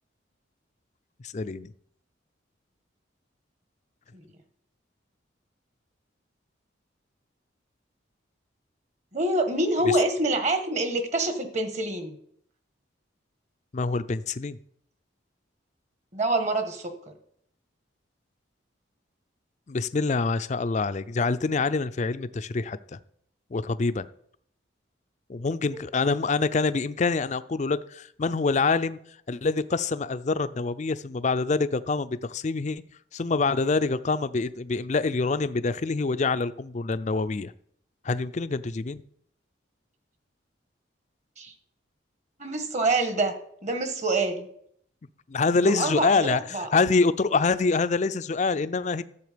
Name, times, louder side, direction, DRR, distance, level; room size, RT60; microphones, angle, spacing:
voice 1, 1.2-1.7 9.9-10.0 13.7-14.6 19.7-22.8 23.5-24.1 25.3-29.0 29.3-32.8 33.1-37.5 38.0-39.0 45.3-49.0, left 4 dB, 40° left, 14 dB, 0.4 m, -26 dB
voice 2, 9.1-12.1 16.1-17.1 41.4-41.5 42.4-43.3 43.6-44.5 45.6-46.7, right 2 dB, 40° right, 8 dB, 1.4 m, -26 dB
12.5 x 7.3 x 5.1 m, 0.67 s
head